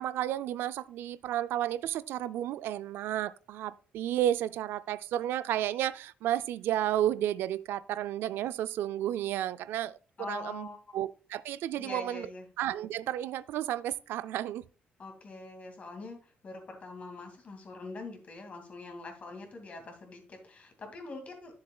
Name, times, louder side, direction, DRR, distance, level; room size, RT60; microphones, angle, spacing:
voice 1, 0.0-10.0 10.3-10.7 10.9-12.3 12.6-14.6, right 12 dB, 85° right, 0.3 m, -32 dB
voice 2, 10.2-10.8 11.8-12.5 15.0-16.2 16.4-21.6, left 3 dB, 40° left, 2.2 m, -43 dB
10.5 x 7.1 x 2.3 m
cardioid pair, 120°, 4 cm